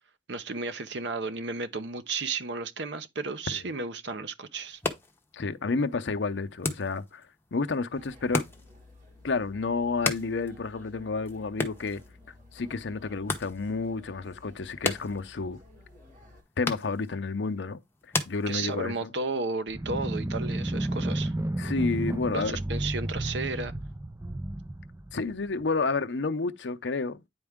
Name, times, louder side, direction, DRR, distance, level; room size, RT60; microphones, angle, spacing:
voice 1, 0.3-4.8 18.5-21.3 22.3-23.8, right 3 dB, 70° right, 0.9 m, -33 dB
sound 1, 4.6-19.1, left 2 dB, 15° left, 1.0 m, -38 dB
voice 2, 5.3-8.4 9.2-12.0 12.5-15.6 16.6-17.8 18.3-19.1 21.6-22.5 25.1-27.2, left 4 dB, 75° left, 0.7 m, -30 dB
sound 2, 7.9-16.4, left 2 dB, 45° right, 3.3 m, -54 dB
sound 3, 19.7-25.7, right 1 dB, 15° right, 0.5 m, -32 dB
9.6 x 4.4 x 3.6 m
head